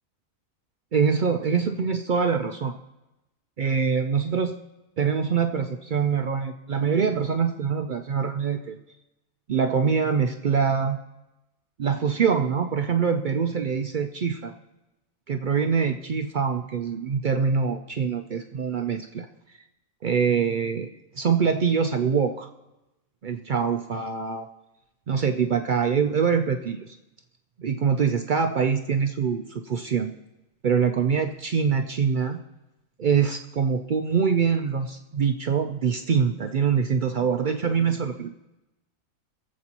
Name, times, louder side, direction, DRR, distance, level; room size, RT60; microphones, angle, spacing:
voice 1, 0.9-2.7 3.6-4.6 5.0-8.8 9.5-11.0 11.8-14.5 15.3-19.3 20.0-20.9 21.2-22.5 23.2-24.5 25.1-27.0 27.6-30.1 30.6-32.4 33.0-38.3, right 6 dB, 75° right, 6 dB, 0.4 m, -24 dB
22.5 x 7.6 x 2.9 m, 0.97 s
omnidirectional pair, 1.5 m